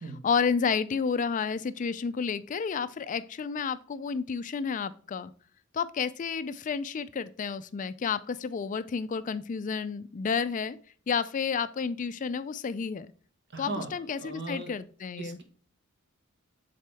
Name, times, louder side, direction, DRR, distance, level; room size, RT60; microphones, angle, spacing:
voice 1, 0.2-5.3 5.7-10.8 11.1-13.1 13.6-15.4, left 6 dB, 40° left, 14 dB, 0.3 m, -31 dB
voice 2, 13.5-13.9 14.2-14.7 15.2-15.4, right 2 dB, 55° right, 5 dB, 1.4 m, -37 dB
7.4 x 4.2 x 3.4 m, 0.43 s
head